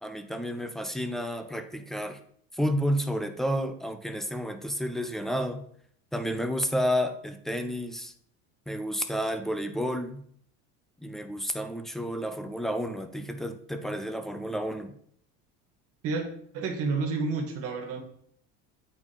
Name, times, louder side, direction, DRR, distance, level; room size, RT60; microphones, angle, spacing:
voice 1, 0.0-2.2 2.5-5.6 6.1-8.1 8.7-10.2 11.0-14.9, equal, ahead, 8 dB, 0.3 m, -31 dB
voice 2, 16.5-18.0, right 4 dB, 45° right, 3 dB, 1.6 m, -29 dB
8.6 x 4.4 x 4.4 m, 0.64 s
cardioid pair, 150°, 32 cm